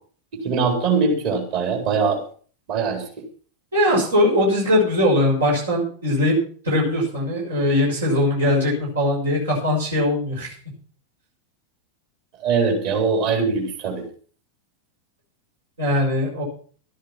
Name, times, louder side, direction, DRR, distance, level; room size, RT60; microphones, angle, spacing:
voice 1, 0.4-2.2 2.7-3.0 12.4-14.0, right 5 dB, 45° right, 3 dB, 4.3 m, -21 dB
voice 2, 3.7-6.3 6.6-10.5 15.8-16.4, left 1 dB, 70° right, -4 dB, 6.2 m, -20 dB
13.0 x 10.5 x 5.9 m, 0.44 s
figure-of-eight pair, 90°, 0 cm